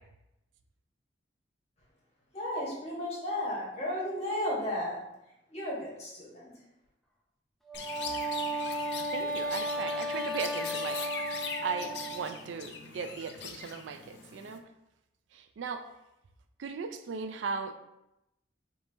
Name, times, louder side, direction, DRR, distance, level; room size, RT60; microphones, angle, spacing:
voice 1, 2.3-5.0 5.5-6.5, left 1 dB, 35° left, -5 dB, 1.3 m, -34 dB
Chirp tweet, 7.7-14.6, left 6 dB, 65° left, 0.4 m, -41 dB
Wind instrument woodwind instrument, 7.7-12.3, equal, ahead, 0.4 m, -34 dB
voice 2, 9.1-11.0 11.6-14.6 15.6-15.8 16.6-17.8, right 5 dB, 85° right, 8 dB, 0.4 m, -37 dB
5.2 x 2.8 x 2.7 m, 0.90 s
head